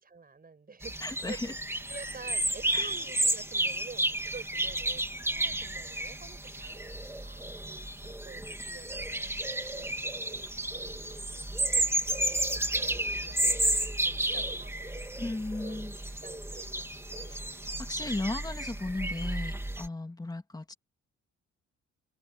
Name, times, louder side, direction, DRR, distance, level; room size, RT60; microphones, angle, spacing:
voice 1, 0.0-1.0 1.3-1.6 1.9-9.3 9.7-11.6 12.0-12.6 12.9-13.5 14.0-15.2 15.6-17.6, right 4 dB, 30° right, 6.1 m, -49 dB
sound 1, 0.8-19.9, right 1 dB, 10° right, 3.4 m, -32 dB
voice 2, 1.0-1.5 2.7-2.9 15.2-16.0 17.3-17.4 17.8-20.7, left 2 dB, 15° left, 2.2 m, -36 dB
cardioid pair, 90°, 30 cm